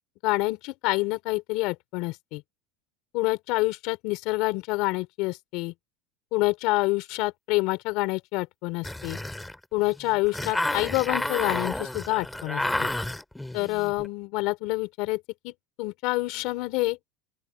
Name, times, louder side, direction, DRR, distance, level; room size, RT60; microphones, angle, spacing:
voice 1, 0.2-2.4 3.1-5.7 6.3-9.2 9.7-12.9 13.5-17.0, left 22 dB, 60° left, 4.2 m, -27 dB
sound 1, 8.8-14.1, left 1 dB, 5° left, 2.5 m, -31 dB
open air
supercardioid pair, 140°, 0 cm